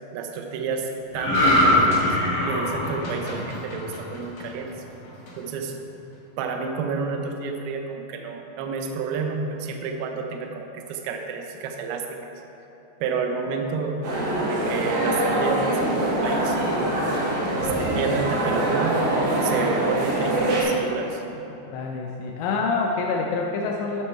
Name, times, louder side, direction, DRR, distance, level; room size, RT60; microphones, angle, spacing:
voice 1, 0.1-2.2 2.5-4.7 5.4-5.7 6.4-12.3 13.0-16.6 17.6-19.0 19.4-21.2, right 5 dB, 85° right, 3 dB, 2.1 m, -30 dB
sound 1, 1.1-4.6 5.0-5.3, left 1 dB, 60° left, 1.9 m, -22 dB
sound 2, 14.0-20.6, right 1 dB, 65° right, 3.5 m, -24 dB
voice 2, 21.7-24.1, left 4 dB, 85° left, 1 dB, 2.7 m, -26 dB
12.5 x 4.4 x 4.4 m, 3.0 s
omnidirectional pair, 5.1 m